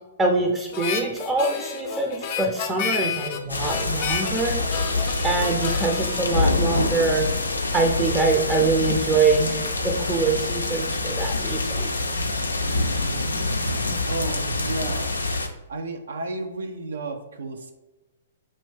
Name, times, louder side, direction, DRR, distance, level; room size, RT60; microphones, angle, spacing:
voice 1, 0.2-4.6 5.2-7.2 7.7-11.9, right 3 dB, 15° right, 1 dB, 0.5 m, -24 dB
Harmonica, 0.7-7.2, left 6 dB, 45° left, 0.6 m, -31 dB
sound 1, 3.5-15.5, left 2 dB, 90° left, 0.5 m, -26 dB
voice 2, 14.1-15.1 15.7-17.7, right 2 dB, 75° right, 5 dB, 0.5 m, -32 dB
5.3 x 2.6 x 3.2 m, 1.1 s
figure-of-eight pair, 120°, 0 cm